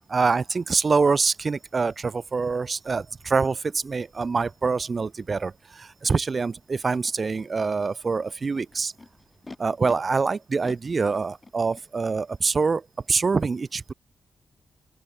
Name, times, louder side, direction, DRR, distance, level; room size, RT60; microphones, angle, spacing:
voice 1, 0.1-8.9 9.6-13.9, right 4 dB, 40° right, 2.0 m, -25 dB
Animal, 6.0-6.1 6.9-7.4 8.3-9.9 10.6-11.8, left 2 dB, 25° left, 7.1 m, -45 dB
open air
cardioid pair, 85°, 0 cm